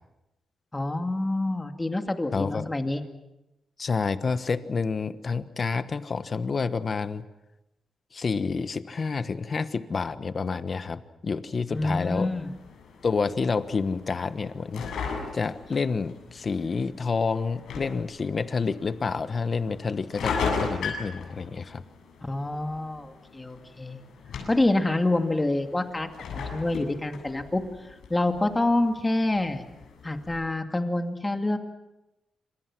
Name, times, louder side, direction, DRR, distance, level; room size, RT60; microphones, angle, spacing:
voice 1, 0.7-3.0 11.7-12.5 22.2-24.0 24.5-29.6 30.0-31.6, left 2 dB, 15° left, 5 dB, 2.3 m, -27 dB
voice 2, 2.3-2.7 3.8-7.2 8.1-12.3 13.0-21.8, left 4 dB, 40° left, 12 dB, 1.3 m, -29 dB
sound 1, 11.7-30.4, left 5 dB, 90° left, 7.7 m, -38 dB
27.5 x 26.5 x 6.1 m, 0.94 s
cardioid pair, 125°, 0 cm